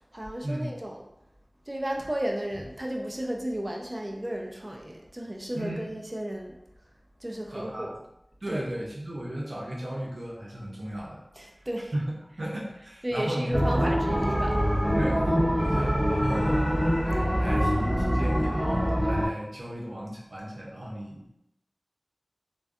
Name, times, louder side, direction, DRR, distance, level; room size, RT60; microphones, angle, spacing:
voice 1, 0.1-1.1 1.7-6.6 7.2-8.0 8.5-8.6 11.4-11.9 13.0-15.1, right 1 dB, 35° right, 1 dB, 0.3 m, -34 dB
voice 2, 5.5-6.0 7.5-7.9 8.4-11.2 11.9-14.0 14.9-16.7 17.0-21.3, right 1 dB, 80° right, -4 dB, 0.6 m, -35 dB
sound 1, 13.5-19.3, equal, 5° left, 1.2 m, -24 dB
2.5 x 2.2 x 2.3 m, 0.83 s
wide cardioid pair, 50°, 0 cm